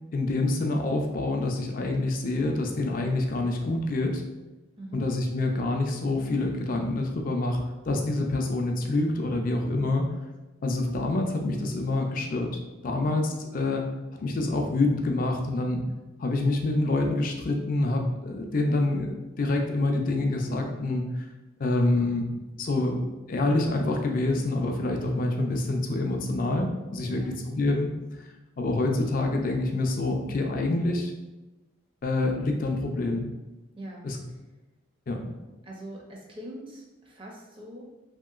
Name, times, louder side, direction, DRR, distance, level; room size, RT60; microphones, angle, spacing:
voice 1, 0.1-4.2 4.9-10.1 10.6-12.5 12.8-13.9 14.2-15.8 16.2-21.3 21.6-22.3 22.6-27.9 28.6-31.1 32.0-33.3 34.0-34.2 35.1-35.3, left 2 dB, 40° left, 2 dB, 0.3 m, -26 dB
voice 2, 4.8-5.1 27.0-27.4 33.7-34.1 35.6-37.8, right 1 dB, 25° right, -2 dB, 0.5 m, -42 dB
2.9 x 2.8 x 2.3 m, 1.1 s
head